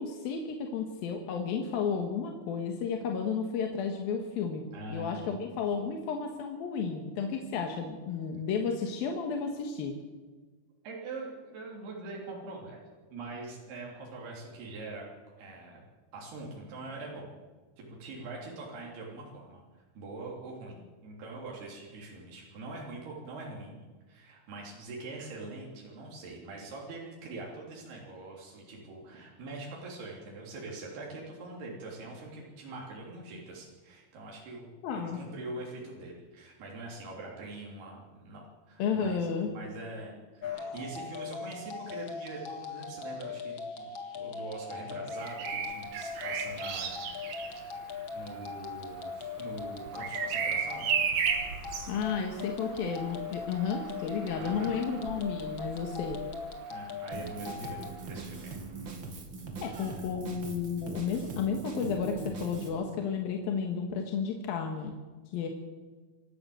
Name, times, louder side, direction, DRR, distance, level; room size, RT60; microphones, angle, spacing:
voice 1, 0.0-4.6 4.9-9.9 34.8-35.2 38.8-39.5 51.9-56.2 59.6-65.0 65.3-65.5, left 6 dB, 70° left, 3 dB, 3.2 m, -32 dB
voice 2, 4.7-5.4 10.8-15.0 15.4-15.8 16.1-17.4 17.8-19.6 19.9-23.8 24.1-39.2 39.5-47.0 48.1-50.9 54.4-54.8 56.7-58.5 59.7-60.0, right 2 dB, 85° right, -2 dB, 5.3 m, -43 dB
sound 1, 40.4-57.9, left 5 dB, 45° left, 1.9 m, -40 dB
Bird vocalization bird call bird song, 45.1-56.9 58.6-58.9, right 7 dB, 65° right, 3.3 m, -36 dB
Drum kit, 57.1-62.7, right 4 dB, 35° right, 2.5 m, -41 dB
26.5 x 12.5 x 7.9 m, 1.4 s
omnidirectional pair, 4.5 m